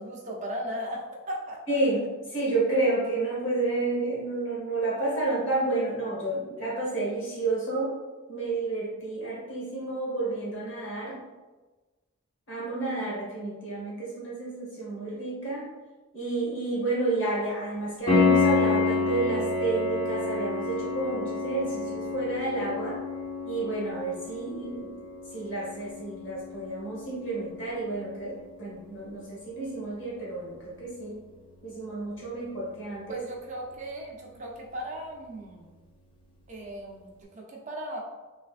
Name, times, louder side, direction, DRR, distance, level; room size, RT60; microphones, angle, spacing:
voice 1, 0.0-1.6 33.1-35.7 36.5-38.0, equal, 35° right, -1 dB, 0.6 m, -37 dB
voice 2, 1.7-8.0 8.3-11.2 12.5-15.7 16.1-23.0 23.4-24.9 25.3-31.2 31.6-33.2, right 2 dB, 60° left, -6 dB, 1.5 m, -30 dB
Piano, 18.1-28.7 32.0-32.1, left 4 dB, 25° left, 0.7 m, -29 dB
3.3 x 3.1 x 2.5 m, 1.2 s
head